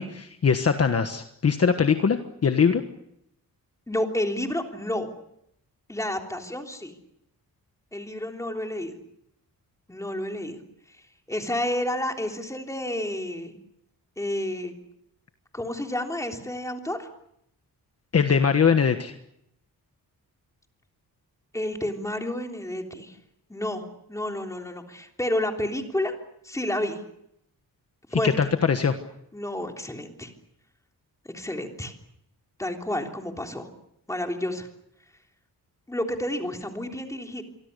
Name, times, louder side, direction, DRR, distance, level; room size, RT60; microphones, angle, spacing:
voice 1, 0.0-2.8 18.1-19.1 28.4-28.9, left 6 dB, 45° left, 7 dB, 1.4 m, -22 dB
voice 2, 3.9-5.1 5.9-7.0 7.9-9.0 9.9-10.6 10.9-11.0 11.3-13.6 14.2-14.7 15.5-17.1 21.5-23.2 23.5-23.8 24.1-26.2 26.4-27.0 28.1-28.5 29.3-30.3 31.3-31.9 32.6-33.7 34.1-34.7 35.9-37.4, left 1 dB, 10° left, 3 dB, 3.4 m, -30 dB
27.5 x 24.0 x 6.8 m, 0.78 s
wide cardioid pair, 155°, 35 cm